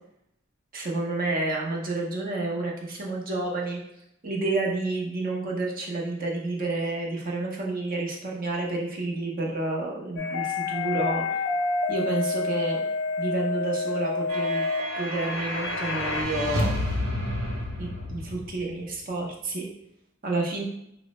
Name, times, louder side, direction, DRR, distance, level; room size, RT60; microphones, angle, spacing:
voice 1, 0.7-3.8 4.2-11.2 11.9-12.8 13.2-14.6 14.9-16.7 17.8-19.7 20.2-20.6, right 2 dB, 45° right, -1 dB, 0.8 m, -29 dB
sound 1, 10.2-16.2, left 4 dB, 60° left, 0.4 m, -29 dB
sound 2, 14.3-19.0, equal, 85° right, 0.8 m, -30 dB
4.5 x 2.0 x 3.1 m, 0.78 s
head